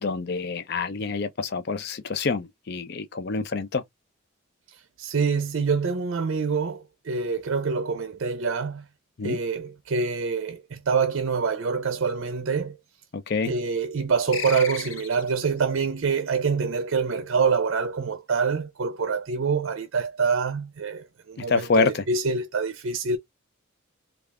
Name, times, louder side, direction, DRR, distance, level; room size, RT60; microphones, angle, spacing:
voice 1, 0.0-3.8 9.2-9.4 13.1-13.5 21.4-22.0, left 4 dB, 50° left, 0.5 m, -26 dB
voice 2, 4.7-8.8 9.2-12.8 13.4-23.2, right 5 dB, 65° right, 0.5 m, -26 dB
sound 1, 14.3-15.5, left 7 dB, 75° left, 0.8 m, -34 dB
3.3 x 2.4 x 3.5 m
head